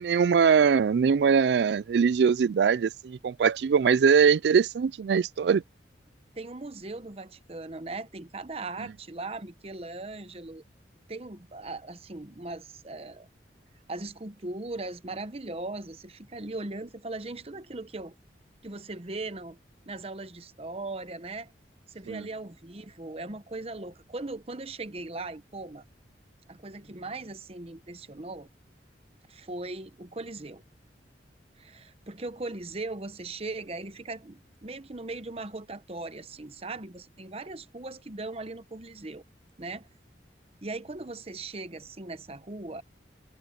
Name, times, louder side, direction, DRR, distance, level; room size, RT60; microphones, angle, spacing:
voice 1, 0.0-5.6 22.1-22.3, right 6 dB, 70° right, 0.3 m, -22 dB
voice 2, 6.3-10.6 11.1-13.3 13.9-18.1 18.6-19.6 19.9-21.5 21.9-25.8 26.5-28.5 29.3-30.6 31.6-39.2 39.6-39.9 40.6-42.8, right 2 dB, 35° right, 1.0 m, -39 dB
head